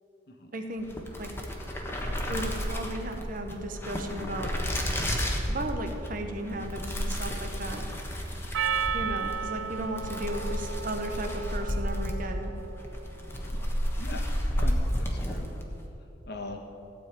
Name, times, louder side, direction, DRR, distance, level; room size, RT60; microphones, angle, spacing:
voice 1, 0.5-0.9 1.2-1.3 2.3-4.5 5.5-7.9 8.9-12.5, right 1 dB, 45° right, 5 dB, 1.1 m, -35 dB
sound 1, 0.8-15.7, equal, 10° left, 1.3 m, -32 dB
sound 2, 4.5-11.0, right 1 dB, 75° left, 1.8 m, -48 dB
Percussion, 8.5-13.1, right 7 dB, 85° right, 0.4 m, -34 dB
voice 2, 14.5-15.5 16.3-16.6, left 2 dB, 55° left, 4 dB, 1.4 m, -42 dB
15.5 x 5.3 x 9.1 m, 2.9 s
head